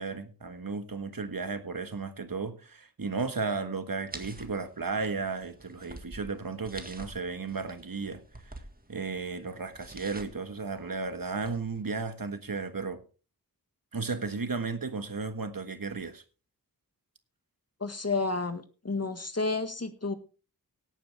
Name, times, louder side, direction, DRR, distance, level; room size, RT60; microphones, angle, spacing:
voice 1, 0.0-8.5 8.9-13.0 13.9-16.2, right 4 dB, 65° right, 1.5 m, -34 dB
sound 1, 4.1-11.8, right 1 dB, 25° right, 1.8 m, -49 dB
voice 2, 17.8-20.1, left 3 dB, 40° left, 1.7 m, -31 dB
17.5 x 9.1 x 3.5 m
wide cardioid pair, 50°, 37 cm